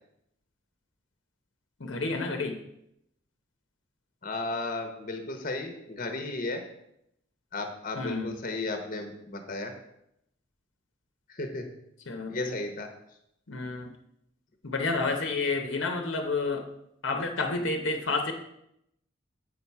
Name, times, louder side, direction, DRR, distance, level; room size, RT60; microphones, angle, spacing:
voice 1, 1.8-2.6 8.0-8.3 12.1-12.6 13.5-13.9 14.6-16.6 17.0-18.3, left 3 dB, 70° left, 4 dB, 1.0 m, -30 dB
voice 2, 4.2-6.6 7.5-9.7 11.3-11.7 12.3-12.9, left 2 dB, 45° left, 5 dB, 1.0 m, -34 dB
8.1 x 5.6 x 4.6 m, 0.78 s
head